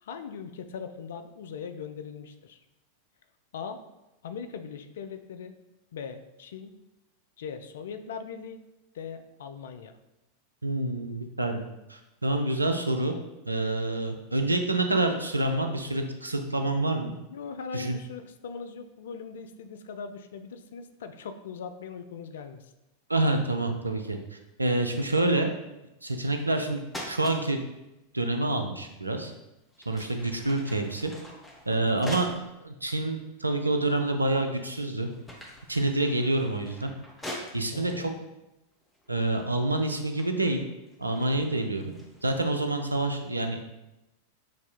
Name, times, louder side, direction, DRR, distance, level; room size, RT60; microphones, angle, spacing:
voice 1, 0.0-2.6 3.5-3.8 4.2-5.5 5.9-6.7 7.4-8.6 8.9-10.0 17.3-22.7 31.8-32.2 37.7-38.1, left 6 dB, 60° left, 8 dB, 0.3 m, -40 dB
voice 2, 10.6-11.6 11.9-13.1 13.5-17.1 17.7-18.0 23.1-24.2 24.6-25.5 26.0-26.8 27.1-27.6 28.1-29.3 29.9-31.1 31.7-32.3 32.6-35.1 35.7-36.9 37.5-38.1 39.1-40.6 41.0-41.9 42.2-43.8, right 2 dB, 85° right, 5 dB, 0.4 m, -27 dB
sound 1, 26.2-26.6 26.9-27.4 29.0-29.2 29.7-32.5 33.1-33.2 34.0-34.4 34.8-37.9 38.8-39.1 39.4-42.4, left 1 dB, 10° left, 0.8 m, -43 dB
5.9 x 2.7 x 2.3 m, 0.95 s
figure-of-eight pair, 90°, 0 cm